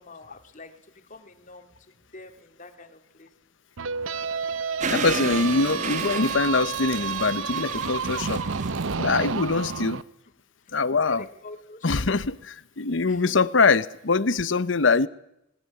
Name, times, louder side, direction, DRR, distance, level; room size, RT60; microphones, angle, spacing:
voice 1, 0.0-3.3 10.6-10.8 11.0-12.2 13.0-13.4, left 2 dB, 40° left, 5 dB, 2.9 m, -46 dB
sound 1, 3.8-10.0, right 5 dB, 85° right, 0.8 m, -30 dB
sound 2, 4.8-9.9, right 4 dB, 40° right, 1.2 m, -34 dB
voice 2, 4.9-8.4 9.0-10.0 10.7-11.2 11.8-15.1, left 4 dB, 70° left, 16 dB, 0.9 m, -23 dB
Tearing, 5.6-9.3, right 4 dB, 55° right, 1.8 m, -46 dB
20.0 x 19.5 x 9.9 m, 0.81 s
head